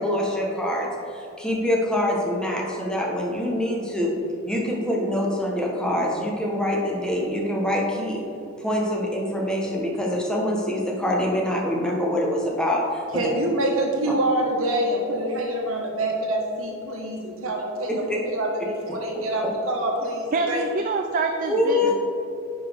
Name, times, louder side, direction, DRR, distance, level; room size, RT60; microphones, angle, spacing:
voice 1, 0.0-4.1 4.4-8.2 8.6-13.2 14.1-14.2 18.1-18.2 21.5-21.9, left 1 dB, 5° left, -2 dB, 1.1 m, -25 dB
voice 2, 13.1-20.6, right 1 dB, 80° right, 0 dB, 1.4 m, -26 dB
voice 3, 20.3-21.9, right 3 dB, 40° right, 5 dB, 0.4 m, -26 dB
10.0 x 5.2 x 3.5 m, 2.6 s
head